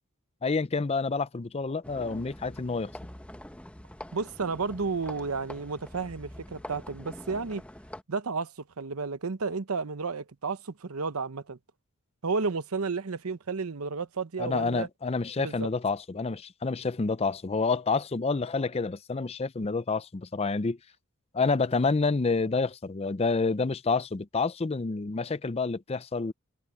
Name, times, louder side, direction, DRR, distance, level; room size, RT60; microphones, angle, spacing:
voice 1, 0.4-2.9 14.4-20.8 21.3-26.3, left 4 dB, 30° left, 0.5 m, -28 dB
sound 1, 1.8-8.0, left 1 dB, 5° left, 0.9 m, -45 dB
voice 2, 4.1-7.6 8.1-11.6 12.2-14.9 15.4-15.7, right 4 dB, 85° right, 0.9 m, -32 dB
head